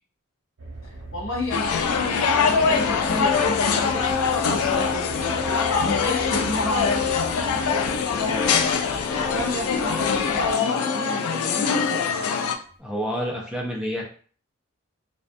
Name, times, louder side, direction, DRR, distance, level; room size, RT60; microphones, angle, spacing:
sound 1, 0.6-10.5, right 2 dB, 60° right, 0.6 m, -39 dB
voice 1, 0.8-8.6 9.1-12.3, left 1 dB, 60° left, -3 dB, 0.8 m, -32 dB
Organ, 0.8-0.9 1.8-1.9 2.2-12.1, left 3 dB, 20° left, 1.1 m, -34 dB
sound 2, 1.5-12.5, left 6 dB, 90° left, 0.3 m, -23 dB
voice 2, 12.8-14.0, equal, 5° right, -2 dB, 0.4 m, -28 dB
2.3 x 2.1 x 2.5 m, 0.43 s
head